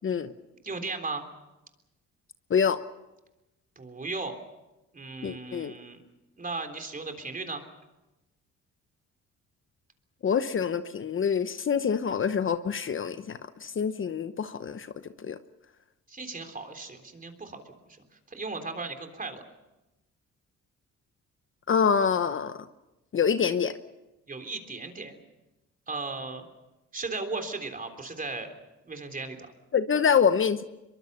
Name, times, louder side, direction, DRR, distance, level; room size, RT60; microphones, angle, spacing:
voice 1, 0.6-1.2 3.8-4.4 4.9-6.0 6.4-7.6 16.1-18.0 18.3-19.4 24.3-25.2 25.9-26.5 26.9-28.5 28.9-29.5, right 3 dB, 30° right, 6 dB, 3.6 m, -36 dB
voice 2, 2.5-2.8 5.2-5.7 10.2-14.9 15.2-15.4 21.7-22.6 23.1-23.8 29.7-30.6, left 7 dB, 40° left, 11 dB, 1.0 m, -26 dB
23.0 x 23.0 x 6.9 m, 1.0 s
cardioid pair, 90°, 30 cm